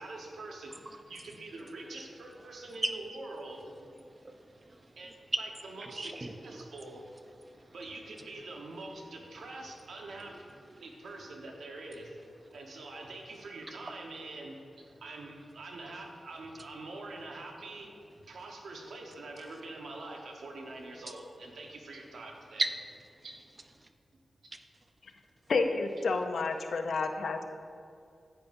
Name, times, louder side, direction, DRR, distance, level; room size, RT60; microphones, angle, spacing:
voice 1, 0.0-3.7 5.0-5.1 5.4-6.1 6.4-7.0 7.7-10.3 10.8-12.1 12.5-17.9 18.3-22.6 23.2-23.4, right 2 dB, 85° right, 1.2 m, -44 dB
voice 2, 2.5-2.9 4.0-5.0 5.8-6.7 7.4-7.8 10.3-10.8 22.6-22.7 23.8-23.9, right 2 dB, 30° right, 0.6 m, -38 dB
voice 3, 25.5-27.4, left 3 dB, 75° left, 0.6 m, -30 dB
10.5 x 8.9 x 2.6 m
wide cardioid pair, 80°, 0 cm